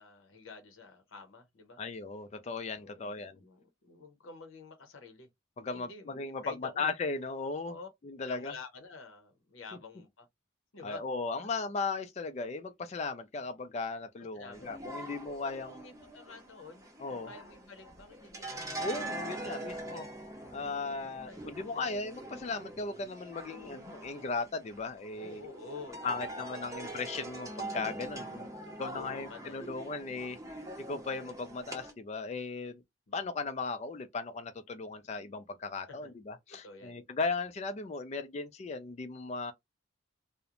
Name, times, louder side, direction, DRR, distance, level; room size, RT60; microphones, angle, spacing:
voice 1, 0.0-1.8 2.8-5.3 5.7-6.9 7.7-7.9 8.2-10.3 10.7-11.0 11.4-11.5 14.3-15.0 15.4-18.9 19.4-20.1 20.9-21.9 23.5-24.2 25.2-26.8 28.2-29.8 30.4-30.7 33.1-33.4 35.0-35.2 35.9-36.1 36.6-37.0, left 4 dB, 80° left, 0.7 m, -50 dB
voice 2, 1.8-3.4 5.6-7.8 8.0-8.5 10.8-15.8 17.0-17.3 18.8-20.1 20.5-25.5 26.0-28.5 28.8-30.4 30.8-32.8 33.1-39.5, left 4 dB, 35° left, 0.3 m, -37 dB
sound 1, 14.5-31.9, right 1 dB, 15° right, 0.6 m, -43 dB
2.4 x 2.0 x 2.9 m
head